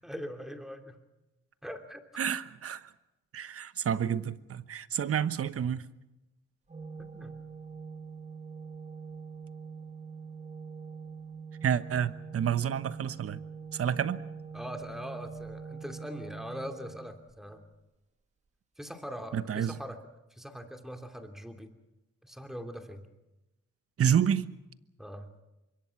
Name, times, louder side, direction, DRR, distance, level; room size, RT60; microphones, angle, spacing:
voice 1, 0.0-1.0 1.6-2.2 7.0-7.3 11.7-11.9 14.5-17.6 18.8-20.0 20.3-21.7 22.2-23.0 25.0-25.3, equal, ahead, 2.9 m, -42 dB
voice 2, 2.2-2.9 3.3-5.8 11.6-13.4 13.7-14.2 19.3-19.8 24.0-24.4, right 8 dB, 50° right, 1.1 m, -29 dB
Organ, 6.7-17.6, right 5 dB, 25° right, 2.0 m, -44 dB
25.5 x 22.5 x 5.9 m
cardioid pair, 90°, 30 cm